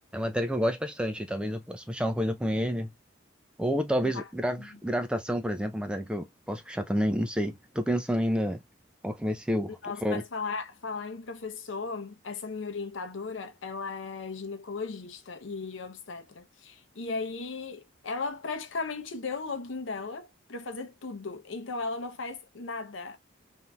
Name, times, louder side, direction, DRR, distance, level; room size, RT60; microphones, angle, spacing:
voice 1, 0.1-2.9 3.6-8.6 9.0-9.7 10.0-10.2, equal, 5° right, 0.4 m, -29 dB
voice 2, 9.8-23.2, left 4 dB, 75° left, 0.7 m, -36 dB
3.5 x 2.6 x 2.3 m
head